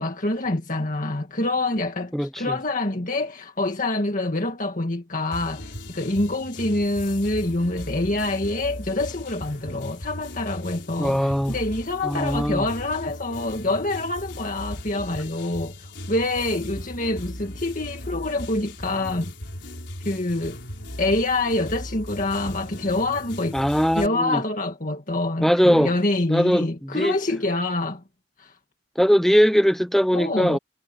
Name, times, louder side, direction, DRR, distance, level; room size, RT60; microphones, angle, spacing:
voice 1, 0.0-19.3 20.1-20.6 21.0-23.6 24.0-28.0 28.4-28.5 30.1-30.6, left 2 dB, 40° left, 1.9 m, -26 dB
voice 2, 2.1-2.6 11.0-11.6 12.0-12.7 23.5-24.4 25.4-25.9 26.3-27.2 29.0-30.6, equal, ahead, 0.8 m, -20 dB
sound 1, 5.3-24.1, left 1 dB, 60° left, 5.0 m, -37 dB
head